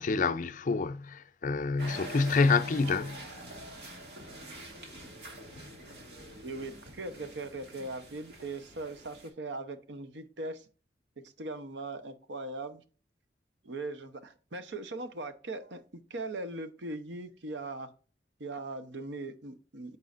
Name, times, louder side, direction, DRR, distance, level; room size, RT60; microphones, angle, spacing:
voice 1, 0.0-3.2, left 4 dB, 45° left, 0.4 m, -27 dB
sound 1, 1.8-9.3, right 1 dB, 65° right, 2.3 m, -46 dB
voice 2, 6.4-10.7 11.2-12.8 13.6-17.9 18.4-20.0, right 2 dB, 90° right, 0.8 m, -40 dB
9.3 x 5.5 x 2.5 m
head